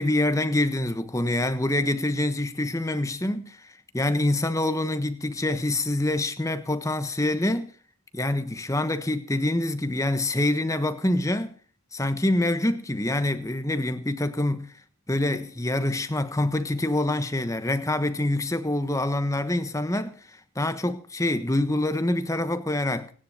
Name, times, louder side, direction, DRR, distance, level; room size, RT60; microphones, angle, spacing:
voice 1, 0.0-7.7 8.1-11.5 11.9-14.7 15.1-20.2 20.5-23.1, left 1 dB, 15° left, 1.2 m, -26 dB
25.0 x 10.0 x 4.2 m
head